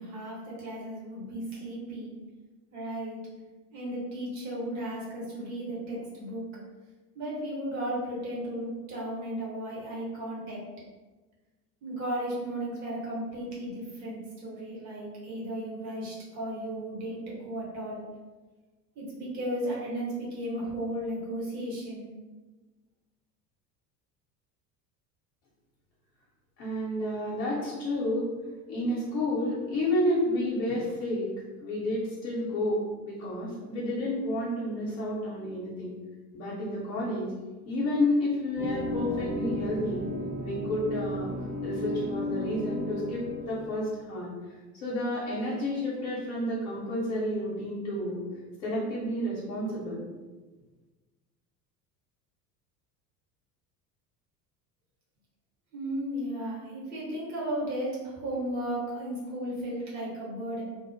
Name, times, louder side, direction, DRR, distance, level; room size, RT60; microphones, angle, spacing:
voice 1, 0.0-2.1 2.7-3.2 3.7-6.4 7.1-10.6 11.8-18.0 19.0-22.1 55.7-60.6, right 1 dB, 35° right, -5 dB, 1.1 m, -35 dB
voice 2, 26.6-28.3 28.7-31.3 31.6-35.9 36.3-37.3 37.6-40.1 40.4-41.3 41.6-44.3 44.7-48.2 48.6-50.0, left 1 dB, 55° left, -7 dB, 0.9 m, -30 dB
sound 1, 38.6-43.7, left 1 dB, 15° right, 0.6 m, -33 dB
3.0 x 2.0 x 3.0 m, 1.3 s
figure-of-eight pair, 70°, 49 cm